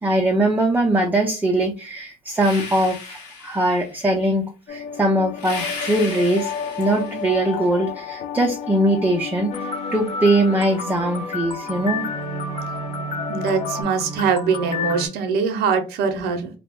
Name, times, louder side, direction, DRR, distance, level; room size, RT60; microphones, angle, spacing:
voice 1, 0.0-6.5 6.8-12.1 12.5-12.6, right 1 dB, 10° right, 0 dB, 0.5 m, -21 dB
sound 1, 2.3-4.0 5.4-7.5, left 4 dB, 85° left, 1.0 m, -35 dB
sound 2, 4.7-13.8, left 8 dB, 55° left, 0.4 m, -33 dB
sound 3, 9.5-15.1, left 2 dB, 30° left, 0.9 m, -30 dB
voice 2, 13.3-16.5, right 5 dB, 70° right, 6 dB, 0.6 m, -22 dB
2.3 x 2.0 x 3.4 m, 0.32 s
supercardioid pair, 85°, 18 cm